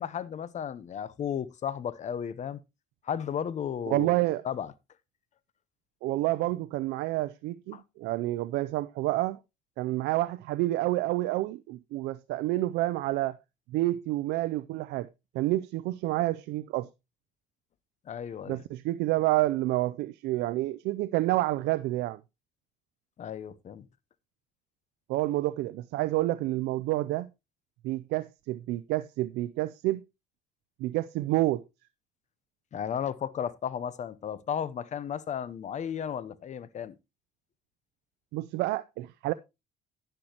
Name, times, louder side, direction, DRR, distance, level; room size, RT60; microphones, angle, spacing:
voice 1, 0.0-2.6 3.0-4.2 4.4-4.7 7.7-7.8 18.1-18.6 23.2-23.8 32.7-36.9, left 8 dB, 45° left, 0.8 m, -34 dB
voice 2, 3.9-4.5 6.0-9.4 9.8-13.4 13.7-15.1 15.3-16.9 18.5-22.2 25.1-27.3 27.8-30.0 30.8-31.6 38.3-39.3, right 17 dB, 85° right, 0.5 m, -29 dB
10.5 x 10.0 x 2.9 m
cardioid pair, 110°, 17 cm